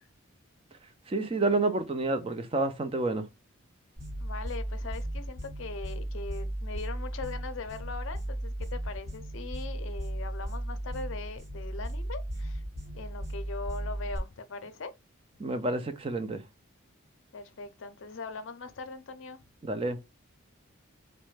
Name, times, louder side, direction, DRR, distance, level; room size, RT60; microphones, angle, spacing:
voice 1, 1.1-3.3 15.4-16.4 19.6-20.0, right 2 dB, 25° right, 0.4 m, -29 dB
sound 1, 4.0-14.2, right 1 dB, 50° right, 1.1 m, -36 dB
voice 2, 4.2-12.6 12.9-14.9 17.3-19.4, left 3 dB, 65° left, 0.5 m, -41 dB
3.1 x 2.1 x 3.1 m
head